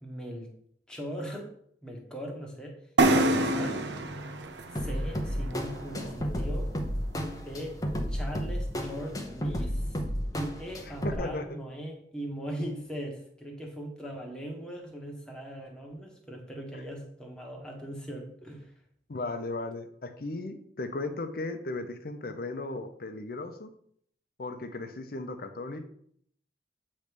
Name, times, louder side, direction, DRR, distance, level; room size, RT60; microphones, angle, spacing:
voice 1, 0.0-0.5 0.9-1.5 1.8-3.8 4.7-6.7 7.4-7.8 8.1-10.0 10.3-18.7, equal, 5° left, 0 dB, 1.3 m, -40 dB
sound 1, 3.0-6.6, right 2 dB, 85° right, 0.7 m, -28 dB
sound 2, 4.8-11.2, equal, 20° left, 0.8 m, -32 dB
voice 2, 10.8-11.6 19.1-23.7 24.4-25.8, left 2 dB, 55° left, 8 dB, 0.7 m, -36 dB
8.3 x 3.2 x 5.2 m, 0.66 s
head